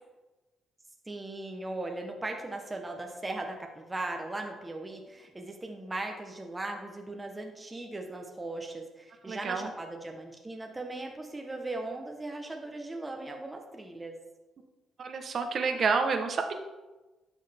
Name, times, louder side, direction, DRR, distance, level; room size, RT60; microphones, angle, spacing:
voice 1, 1.1-14.2, right 2 dB, 15° right, 2 dB, 1.1 m, -38 dB
voice 2, 9.3-9.7 15.0-16.5, right 5 dB, 50° right, 6 dB, 1.1 m, -29 dB
11.0 x 6.3 x 3.5 m, 1.2 s
cardioid pair, 90°, 0 cm